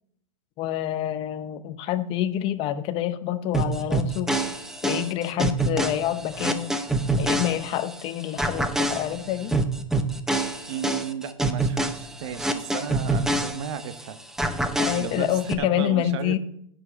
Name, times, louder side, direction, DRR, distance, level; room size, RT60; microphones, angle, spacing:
voice 1, 0.6-4.4 4.8-6.7 7.2-9.5 14.8-16.4, left 12 dB, 35° left, 12 dB, 0.7 m, -27 dB
sound 1, 3.5-8.0 8.4-14.0 14.4-15.5, right 2 dB, 5° right, 0.7 m, -26 dB
voice 2, 10.7-14.2 15.0-16.4, right 8 dB, 60° right, 12 dB, 1.0 m, -34 dB
8.4 x 7.0 x 8.0 m, 0.72 s
supercardioid pair, 140°, 17 cm